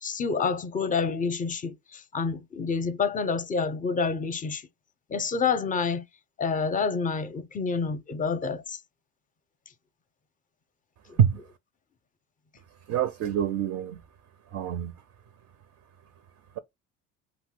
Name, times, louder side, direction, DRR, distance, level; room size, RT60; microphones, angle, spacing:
voice 1, 0.0-4.7 5.1-6.0 6.4-8.8 11.1-11.2, left 5 dB, 20° left, 0.5 m, -28 dB
voice 2, 12.9-14.0 14.5-14.9, right 9 dB, 45° right, 0.4 m, -25 dB
2.6 x 2.1 x 3.6 m
hypercardioid pair, 75°, 38 cm